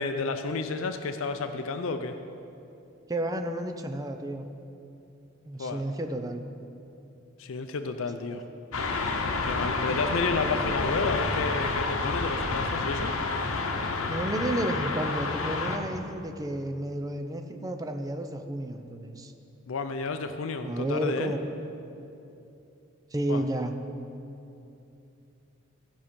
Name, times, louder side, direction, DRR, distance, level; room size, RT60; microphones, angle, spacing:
voice 1, 0.0-2.1 5.6-5.8 7.4-8.4 9.4-13.1 19.7-21.3 23.3-23.4, left 4 dB, 70° left, 8 dB, 0.5 m, -31 dB
voice 2, 3.1-4.5 5.4-6.4 10.4-10.7 14.1-19.3 20.6-21.5 23.1-23.7, right 1 dB, 15° right, 6 dB, 0.5 m, -31 dB
sound 1, 8.7-15.8, left 3 dB, 90° left, 0.9 m, -29 dB
15.5 x 5.5 x 5.2 m, 2.8 s
head